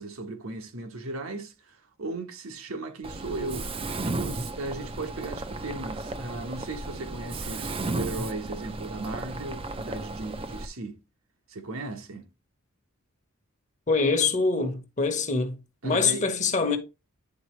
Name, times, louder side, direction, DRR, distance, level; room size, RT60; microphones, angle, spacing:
voice 1, 0.0-3.7 4.2-11.0 11.5-12.3 15.8-16.2, right 2 dB, 75° right, 1.2 m, -36 dB
Mechanisms, 3.0-10.7, right 2 dB, 25° right, 0.5 m, -34 dB
voice 2, 13.9-15.6 15.8-16.8, left 4 dB, 35° left, 1.1 m, -24 dB
9.6 x 4.1 x 3.1 m
head